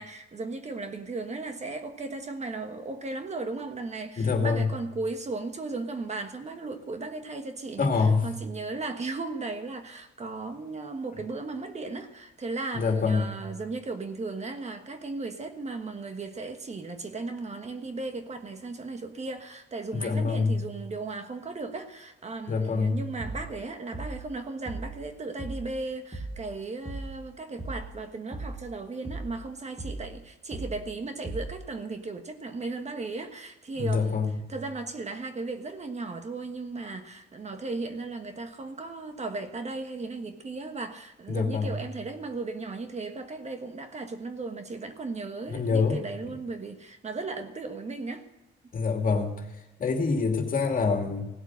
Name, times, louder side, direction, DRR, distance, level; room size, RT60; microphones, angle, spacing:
voice 1, 0.0-34.2 34.5-48.3, right 3 dB, 35° right, 1.4 m, -36 dB
voice 2, 4.2-4.7 7.8-8.3 12.7-13.4 19.9-20.6 22.5-23.1 33.8-34.4 41.3-41.8 45.5-46.0 48.7-49.5 49.8-51.3, left 4 dB, 45° left, 2.4 m, -25 dB
sound 1, 23.2-23.6 23.9-24.3 24.7-25.0 25.4-25.8 26.1-26.5 26.9-27.2 27.6-28.0 28.3-28.7 29.0-29.4 29.8-30.2 30.5-30.9 31.2-31.7, right 2 dB, 15° right, 2.0 m, -37 dB
17.0 x 8.1 x 6.4 m
cardioid pair, 90°, 20 cm